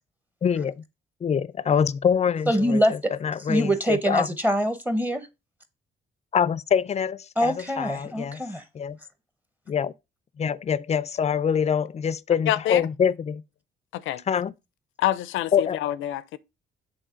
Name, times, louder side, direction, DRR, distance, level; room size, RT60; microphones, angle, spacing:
voice 1, 0.4-0.8 1.2-2.8 3.2-4.3 6.3-8.4 8.7-9.0 9.7-9.9 10.4-13.4 14.3-14.5 15.5-15.8, left 7 dB, 35° left, 0.4 m, -25 dB
voice 2, 2.5-3.1 3.5-5.3 7.4-8.6, equal, 10° right, 0.9 m, -24 dB
voice 3, 12.5-12.8 13.9-14.2 15.0-16.4, left 13 dB, 85° left, 0.6 m, -26 dB
7.9 x 3.6 x 5.0 m
cardioid pair, 90°, 20 cm